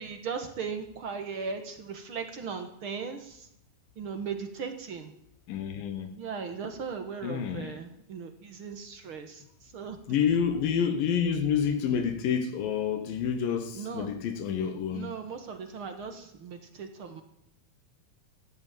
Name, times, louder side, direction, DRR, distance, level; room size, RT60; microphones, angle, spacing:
voice 1, 0.0-3.5 4.0-5.1 6.2-10.0 13.7-14.1 14.9-17.2, right 6 dB, 55° right, 1.6 m, -38 dB
voice 2, 5.5-6.1 7.2-7.7 10.1-15.1, left 7 dB, 70° left, 2.8 m, -28 dB
14.5 x 8.9 x 9.1 m
omnidirectional pair, 4.3 m